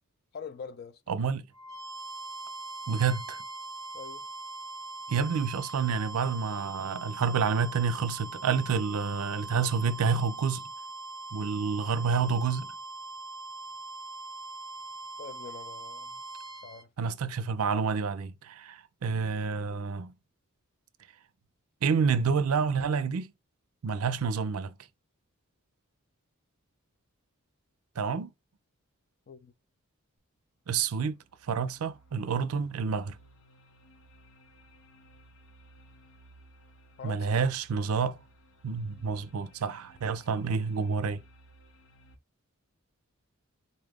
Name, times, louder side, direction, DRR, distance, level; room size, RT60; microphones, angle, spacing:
voice 1, 0.3-1.0 3.9-4.3 15.2-16.2 16.6-16.9 29.3-29.5 37.0-37.3, left 5 dB, 45° left, 0.4 m, -44 dB
voice 2, 1.1-1.5 2.9-3.4 5.1-10.6 11.3-12.7 17.0-20.1 21.8-23.3 23.8-24.7 28.0-28.3 30.7-31.2 31.5-33.2 37.0-38.2 38.6-41.2, right 5 dB, 90° right, 0.4 m, -29 dB
sound 1, 1.5-16.8, right 2 dB, 20° right, 0.8 m, -41 dB
sound 2, 30.2-30.3 30.8-42.2, right 1 dB, 90° left, 0.9 m, -58 dB
4.1 x 2.4 x 3.4 m
head